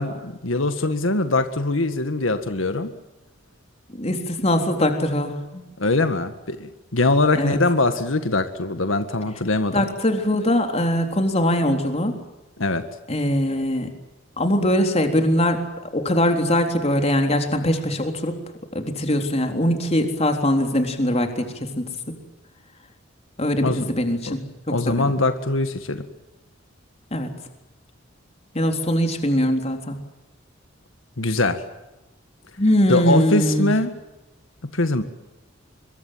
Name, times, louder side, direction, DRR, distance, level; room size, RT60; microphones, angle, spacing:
voice 1, 0.0-2.9 5.8-9.9 12.6-12.8 23.6-23.9 24.3-24.4 24.7-26.0 31.2-31.6 32.9-33.9 34.7-35.0, left 2 dB, 85° left, 8 dB, 1.8 m, -22 dB
voice 2, 3.9-5.6 7.4-7.6 9.7-12.2 13.1-13.9 14.4-15.6 15.9-18.4 18.7-22.1 23.4-25.1 27.1-27.3 28.5-30.0 32.6-33.7, left 1 dB, 35° left, 5 dB, 3.7 m, -22 dB
25.5 x 23.0 x 7.6 m, 1.0 s
head